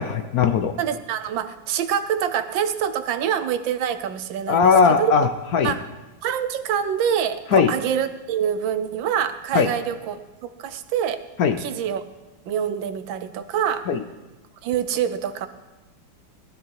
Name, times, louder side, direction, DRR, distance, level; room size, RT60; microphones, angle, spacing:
voice 1, 0.0-0.8 4.5-5.3 5.5-5.7 7.5-7.7 9.5-9.7 11.4-11.6 13.9-14.0, left 6 dB, 65° left, 8 dB, 1.0 m, -18 dB
voice 2, 0.8-5.3 5.6-5.8 6.2-11.2 11.6-12.0 12.5-13.9 14.6-15.5, right 9 dB, 80° right, 11 dB, 1.5 m, -26 dB
18.5 x 12.5 x 4.6 m, 1.1 s
omnidirectional pair, 2.1 m